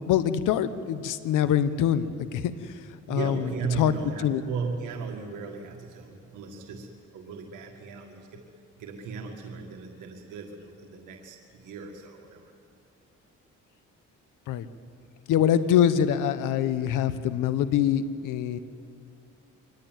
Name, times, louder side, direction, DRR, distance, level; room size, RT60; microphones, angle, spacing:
voice 1, 0.1-2.4 3.1-3.4 3.8-3.9 4.2-4.4 14.5-14.7 15.3-18.6, left 9 dB, 90° left, 13 dB, 1.1 m, -24 dB
voice 2, 3.1-8.5 8.8-12.5, right 5 dB, 90° right, 2 dB, 1.9 m, -36 dB
24.0 x 18.5 x 9.1 m, 2.4 s
cardioid pair, 90°, 30 cm